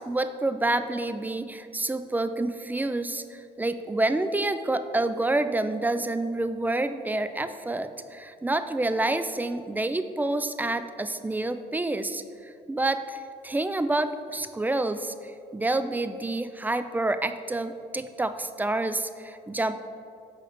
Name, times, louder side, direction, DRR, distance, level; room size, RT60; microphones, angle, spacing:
voice 1, 0.0-15.1 15.5-19.7, right 2 dB, 10° right, 10 dB, 0.3 m, -28 dB
8.2 x 5.6 x 4.1 m, 2.5 s
cardioid pair, 110°, 17 cm